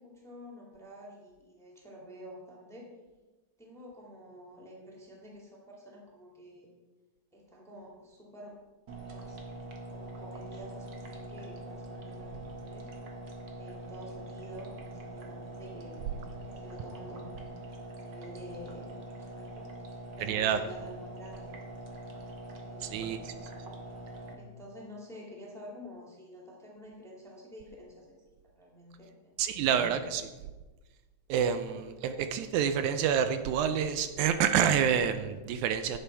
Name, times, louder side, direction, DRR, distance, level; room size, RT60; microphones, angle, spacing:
voice 1, 0.0-2.9 3.6-6.7 7.3-8.6 9.0-9.4 9.9-12.9 13.6-16.1 16.4-17.5 17.9-21.5 22.6-23.5 24.3-28.1 28.4-29.9, equal, ahead, -3 dB, 1.5 m, -49 dB
sound 1, 8.9-24.3, right 1 dB, 50° right, 1.4 m, -44 dB
voice 2, 20.3-20.6 22.8-23.3 29.4-30.3 31.3-36.0, right 8 dB, 80° right, 9 dB, 1.9 m, -28 dB
11.0 x 8.3 x 4.5 m, 1.2 s
omnidirectional pair, 3.5 m